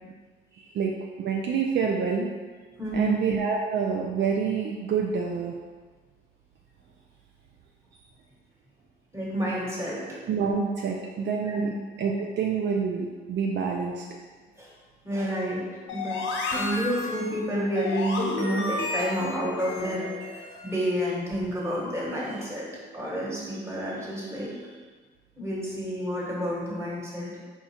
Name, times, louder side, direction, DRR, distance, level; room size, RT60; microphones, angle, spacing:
voice 1, 1.2-2.3 2.9-5.5 10.3-11.7 12.0-14.0, right 6 dB, 60° right, 0 dB, 0.4 m, -27 dB
voice 2, 2.8-3.1 9.1-10.0 11.4-11.6 14.6-14.7 15.0-15.6 15.9-16.2 16.5-20.1 20.6-22.7 22.9-24.5 25.4-27.4, equal, 15° right, -5 dB, 1.4 m, -29 dB
sound 1, 15.9-20.8, left 3 dB, 70° left, 0.8 m, -32 dB
4.3 x 2.4 x 4.3 m, 1.4 s
cardioid pair, 90°, 20 cm